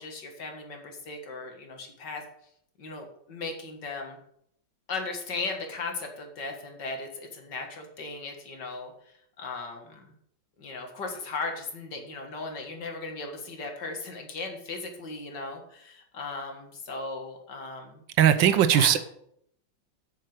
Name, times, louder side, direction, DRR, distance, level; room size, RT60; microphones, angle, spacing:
voice 1, 0.0-2.2 2.8-4.2 4.9-8.9 9.4-10.1 10.6-18.0 18.7-19.0, left 3 dB, 60° left, 3 dB, 2.3 m, -37 dB
voice 2, 18.2-19.0, right 10 dB, 75° right, 12 dB, 1.4 m, -19 dB
7.8 x 6.6 x 7.8 m, 0.71 s
omnidirectional pair, 2.2 m